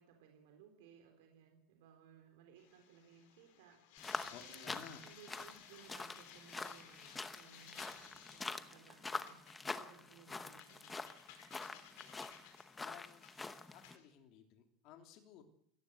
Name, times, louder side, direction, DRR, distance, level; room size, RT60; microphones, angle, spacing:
voice 1, 0.0-4.0 4.3-9.4 9.7-11.0, right 7 dB, 65° right, 4 dB, 4.0 m, -62 dB
sound 1, 2.6-14.0, left 9 dB, 60° left, 4.9 m, -59 dB
sound 2, 4.0-14.0, left 3 dB, 10° left, 0.9 m, -46 dB
voice 2, 4.3-5.0 11.7-12.2 12.8-13.2 13.7-15.4, left 9 dB, 40° left, 5 dB, 3.2 m, -56 dB
24.5 x 17.5 x 8.0 m, 0.69 s
supercardioid pair, 180°, 0 cm